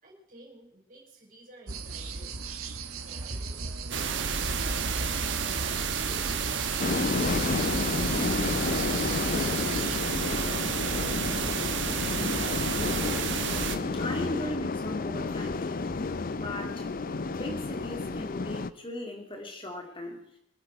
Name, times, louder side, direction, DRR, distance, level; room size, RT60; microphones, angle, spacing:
voice 1, 0.0-2.4 2.8-7.9 10.2-11.6, right 1 dB, 40° right, -2 dB, 5.2 m, -53 dB
sound 1, 1.7-10.0, right 4 dB, 80° right, 1.3 m, -38 dB
sound 2, 3.9-13.8, right 6 dB, 55° right, 1.2 m, -30 dB
sound 3, 6.8-18.7, left 3 dB, 40° left, 0.5 m, -31 dB
voice 2, 11.7-12.5 12.8-12.9 13.5-16.9 17.3-20.2, left 1 dB, 25° left, 2 dB, 2.4 m, -39 dB
25.5 x 9.1 x 4.7 m, 0.73 s
head